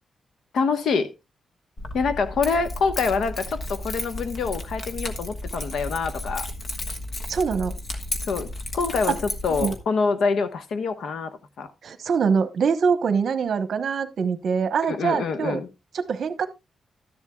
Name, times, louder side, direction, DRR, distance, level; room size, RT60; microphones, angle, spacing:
voice 1, 0.5-1.1 1.9-6.5 8.3-9.2 9.4-11.7 14.9-15.7, left 5 dB, 70° left, 1.1 m, -26 dB
Keys jangling, 1.8-9.8, left 1 dB, 35° left, 1.3 m, -33 dB
voice 2, 7.3-7.7 9.1-9.2 9.5-9.7 11.8-15.6 15.9-16.5, right 6 dB, 55° right, 1.0 m, -24 dB
13.0 x 11.0 x 2.3 m
wide cardioid pair, 175°, 0 cm